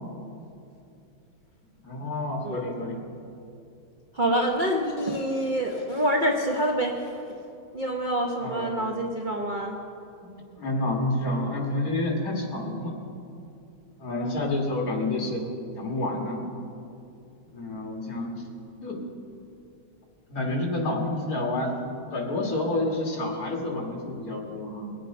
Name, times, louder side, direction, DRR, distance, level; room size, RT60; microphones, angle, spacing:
voice 1, 1.8-3.1 8.4-9.1 10.2-12.9 14.0-15.4 15.8-16.4 17.5-18.4 18.8-19.0 20.3-21.8 22.1-25.0, left 2 dB, 45° left, 0 dB, 2.2 m, -29 dB
voice 2, 4.1-7.2 7.7-9.8 14.1-14.4, right 1 dB, 40° right, 0 dB, 0.7 m, -27 dB
21.5 x 8.1 x 5.3 m, 2.6 s
omnidirectional pair, 2.3 m